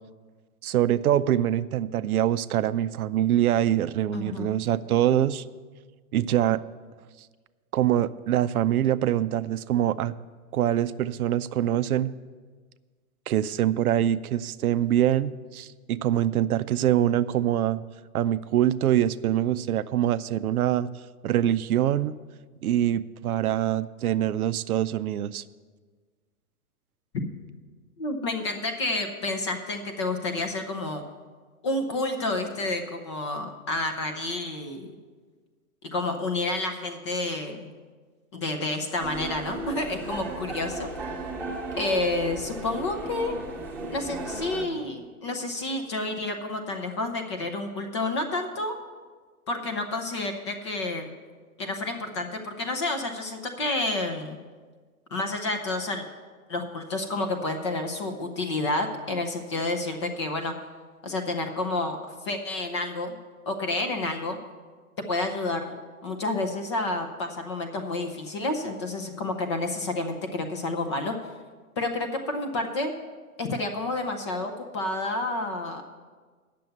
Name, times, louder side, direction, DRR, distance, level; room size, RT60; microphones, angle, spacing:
voice 1, 0.6-5.4 6.1-6.6 7.7-10.1 10.5-12.1 13.3-17.8 18.1-20.9 21.2-22.1 22.6-25.4, right 11 dB, 75° right, 15 dB, 0.6 m, -24 dB
voice 2, 4.1-4.5 28.0-31.0 31.6-34.9 35.8-37.7 38.3-40.9 41.8-43.4 43.9-48.8 49.5-51.1 51.6-54.4 55.1-56.1 56.5-60.5 61.0-62.0 62.2-63.2 63.5-64.4 65.0-71.1 71.8-72.9 73.4-75.8, left 2 dB, 20° left, 5 dB, 0.4 m, -30 dB
sound 1, 39.0-44.7, right 2 dB, 5° right, 1.1 m, -35 dB
9.3 x 6.8 x 7.8 m, 1.5 s
hypercardioid pair, 140°, 45 cm